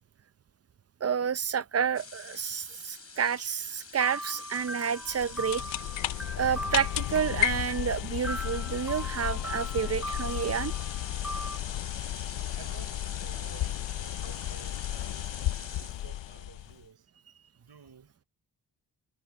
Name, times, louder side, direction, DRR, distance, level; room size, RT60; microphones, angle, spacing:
voice 1, 1.0-5.6 6.4-10.7, right 7 dB, 35° right, 0.7 m, -30 dB
sound 1, 1.9-6.7 7.9-8.0 8.3-16.2, left 3 dB, 35° left, 4.3 m, -46 dB
sound 2, 4.0-11.6, equal, 5° right, 7.3 m, -40 dB
sound 3, 5.0-16.8, left 13 dB, 85° left, 0.7 m, -33 dB
voice 2, 12.5-17.1 17.5-18.1, right 7 dB, 60° right, 6.2 m, -53 dB
cardioid pair, 55°, 43 cm